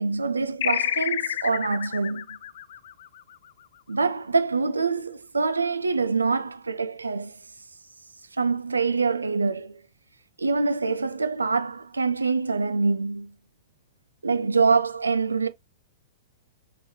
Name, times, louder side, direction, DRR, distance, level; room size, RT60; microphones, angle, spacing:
voice 1, 0.0-2.3 3.9-7.4 8.3-9.8 10.4-13.3 14.2-15.5, right 4 dB, 75° right, 0.3 m, -25 dB
sound 1, 0.6-3.6, left 10 dB, 50° left, 0.4 m, -29 dB
4.6 x 3.1 x 2.9 m
figure-of-eight pair, 105°, 0 cm